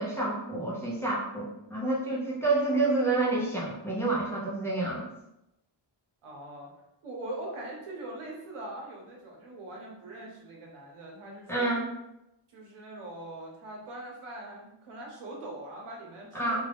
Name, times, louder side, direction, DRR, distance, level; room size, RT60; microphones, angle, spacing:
voice 1, 0.0-5.0 11.5-11.9 16.3-16.6, right 2 dB, 5° left, -6 dB, 0.6 m, -28 dB
voice 2, 6.2-6.7 7.0-11.7 12.5-16.6, right 1 dB, 85° right, -1 dB, 0.9 m, -42 dB
2.5 x 2.4 x 3.4 m, 0.88 s
wide cardioid pair, 110°, 49 cm